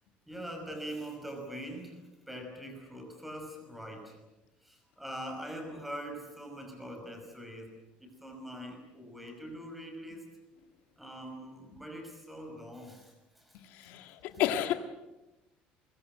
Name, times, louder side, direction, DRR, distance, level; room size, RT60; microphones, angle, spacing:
voice 1, 0.3-4.2 4.6-10.4 11.0-13.9 14.3-14.4, equal, 5° right, 4 dB, 5.6 m, -43 dB
voice 2, 13.7-14.7, left 12 dB, 65° left, 6 dB, 1.8 m, -31 dB
23.5 x 23.5 x 7.8 m, 1.0 s
cardioid pair, 175°, 3 cm